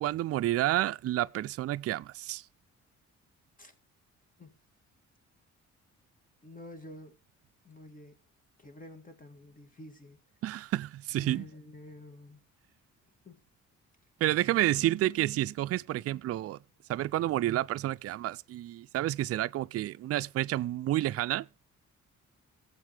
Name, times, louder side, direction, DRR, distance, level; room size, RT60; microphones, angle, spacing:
voice 1, 0.0-2.4 10.4-11.5 14.2-16.6 16.9-21.5, right 14 dB, 50° right, 0.4 m, -30 dB
voice 2, 6.4-7.2 7.6-8.2 8.6-10.2 11.2-12.4 13.2-13.4, left 1 dB, 25° left, 2.5 m, -49 dB
18.0 x 7.4 x 3.4 m
cardioid pair, 90°, 30 cm